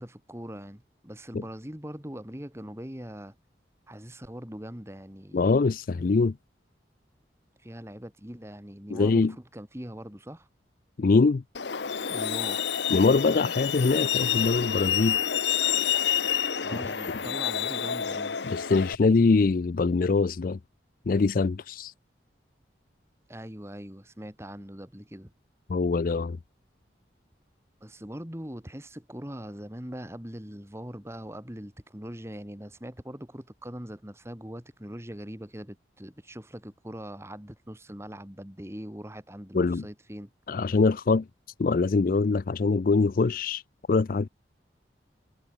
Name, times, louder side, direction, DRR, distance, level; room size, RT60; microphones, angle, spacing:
voice 1, 0.0-3.4 3.9-5.6 7.6-10.5 12.1-12.7 16.6-18.4 23.3-25.3 27.8-40.3, equal, 15° right, 2.3 m, -41 dB
voice 2, 5.3-6.4 8.9-9.3 11.0-11.4 12.9-15.2 18.4-20.6 21.1-21.9 25.7-26.4 39.5-39.8 40.5-41.3 41.6-43.6 43.9-44.3, left 4 dB, 50° left, 0.4 m, -23 dB
Truck, 11.5-18.9, left 8 dB, 70° left, 0.9 m, -28 dB
head